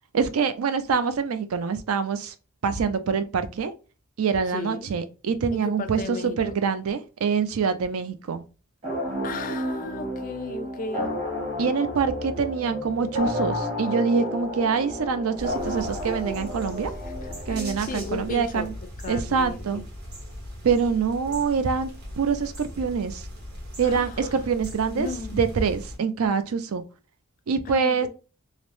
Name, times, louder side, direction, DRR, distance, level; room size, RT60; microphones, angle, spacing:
voice 1, 0.1-2.3 2.6-3.7 4.2-8.4 11.6-16.9 17.5-18.7 19.1-19.8 20.6-21.9 22.2-23.2 23.8-25.1 25.3-26.8 27.5-28.1, right 5 dB, 80° right, 0.4 m, -25 dB
voice 2, 4.5-4.9 5.5-6.6 9.2-11.1 17.2-18.7 19.0-19.9 23.8-24.3 24.9-25.5 27.6-28.1, left 4 dB, 40° left, 0.3 m, -35 dB
sound 1, 8.8-18.3, left 1 dB, 30° right, 1.2 m, -31 dB
sound 2, 15.4-26.0, equal, 50° right, 1.1 m, -39 dB
3.2 x 2.0 x 2.6 m
head